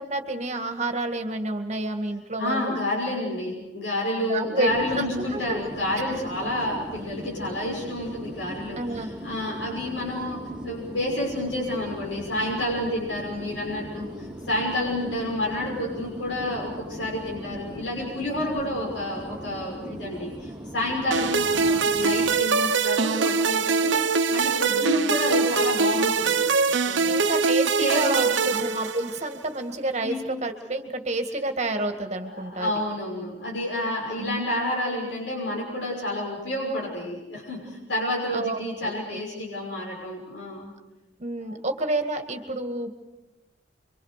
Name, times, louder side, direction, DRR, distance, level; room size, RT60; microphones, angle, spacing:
voice 1, 0.0-2.7 4.3-5.6 6.5-6.7 8.8-9.1 27.1-32.7 34.2-34.4 38.3-39.2 41.2-42.9, right 2 dB, 40° right, 6 dB, 2.0 m, -29 dB
voice 2, 2.4-24.0 24.3-26.5 26.9-27.1 27.8-28.6 30.0-30.2 32.3-40.7 41.5-41.6, left 1 dB, 90° left, -3 dB, 6.3 m, -29 dB
sound 1, 4.6-22.4, equal, 5° right, 2.3 m, -39 dB
sound 2, 21.1-29.4, right 5 dB, 90° right, 1.1 m, -23 dB
27.5 x 24.5 x 6.7 m, 1.0 s
head